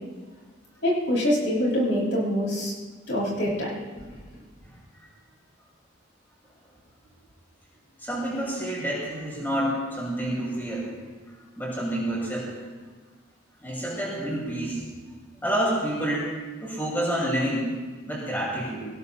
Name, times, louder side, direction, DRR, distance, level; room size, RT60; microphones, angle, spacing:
voice 1, 0.8-2.7 3.1-3.7, equal, 65° left, -5 dB, 5.8 m, -24 dB
voice 2, 8.0-10.9 11.3-12.5 13.6-14.9 15.4-16.4 16.6-17.8 18.1-18.8, right 1 dB, 10° left, -6 dB, 6.8 m, -28 dB
26.0 x 18.5 x 2.9 m, 1.4 s
head